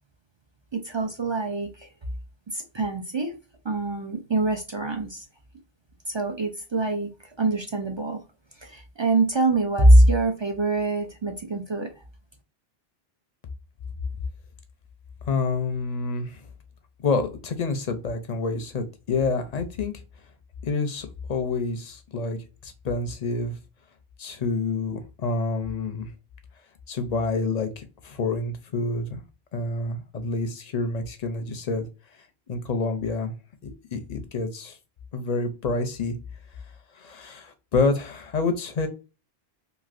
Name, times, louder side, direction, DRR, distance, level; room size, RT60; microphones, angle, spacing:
voice 1, 0.7-1.9 2.5-3.3 3.6-5.3 6.1-8.2 8.6-12.0, right 1 dB, 45° right, 4 dB, 0.4 m, -23 dB
voice 2, 15.2-16.4 17.0-19.9 20.6-22.4 22.6-23.5 24.2-26.1 26.9-29.2 29.5-31.9 32.5-33.3 33.6-34.8 35.1-36.1 36.9-38.9, left 3 dB, 50° left, 8 dB, 0.6 m, -28 dB
3.1 x 2.7 x 2.5 m, 0.31 s
omnidirectional pair, 1.0 m